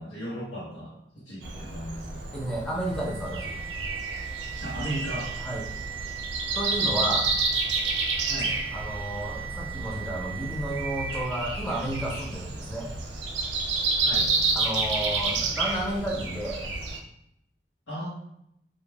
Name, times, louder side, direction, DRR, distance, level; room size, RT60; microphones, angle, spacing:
voice 1, 0.0-2.2 4.6-5.3 8.3-8.6 13.9-14.3 17.9-18.1, right 1 dB, 90° left, -9 dB, 0.7 m, -36 dB
Breathing, 1.4-17.0, right 3 dB, 80° right, 0.4 m, -30 dB
voice 2, 2.3-3.6 5.4-5.6 6.5-7.3 8.7-12.9 14.5-16.6, right 1 dB, 5° left, -3 dB, 0.4 m, -32 dB
sound 1, 2.9-11.4, right 11 dB, 50° left, 0.8 m, -39 dB
2.2 x 2.1 x 3.1 m, 0.76 s
head